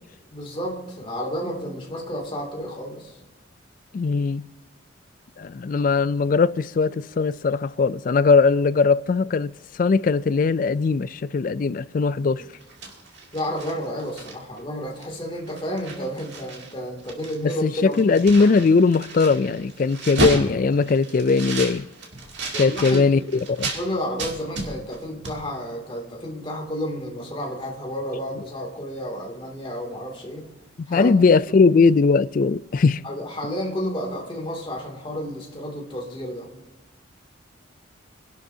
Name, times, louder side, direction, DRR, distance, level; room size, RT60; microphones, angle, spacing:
voice 1, 0.3-3.2 12.2-12.5 13.3-18.0 22.5-23.2 23.7-30.5 30.9-31.1 33.0-36.5, equal, 25° left, 2.6 m, -31 dB
voice 2, 3.9-4.4 5.4-9.5 9.8-12.4 17.4-21.9 22.6-23.2 23.5-23.7 30.9-33.0, left 4 dB, 45° left, 0.3 m, -19 dB
sound 1, 12.5-14.6 15.0-15.2 15.5-16.7 17.0-23.8 24.2-25.0 25.2-25.4, right 2 dB, 60° right, 2.5 m, -32 dB
25.0 x 11.5 x 2.8 m
head